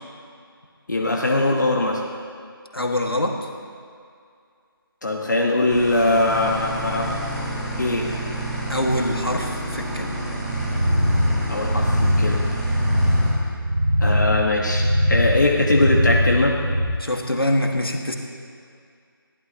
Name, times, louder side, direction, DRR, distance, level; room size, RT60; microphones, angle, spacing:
voice 1, 0.9-2.0 5.0-7.1 7.8-8.1 11.5-12.5 14.0-16.6, left 2 dB, 50° left, 0 dB, 1.3 m, -21 dB
voice 2, 2.7-3.4 8.7-10.2 17.0-18.2, left 1 dB, 75° left, 3 dB, 1.7 m, -24 dB
sound 1, 5.7-13.3, right 1 dB, ahead, 0.8 m, -29 dB
sound 2, 10.5-16.9, left 1 dB, 55° right, 1.9 m, -21 dB
21.0 x 15.0 x 2.9 m, 2.3 s
figure-of-eight pair, 160°, 12 cm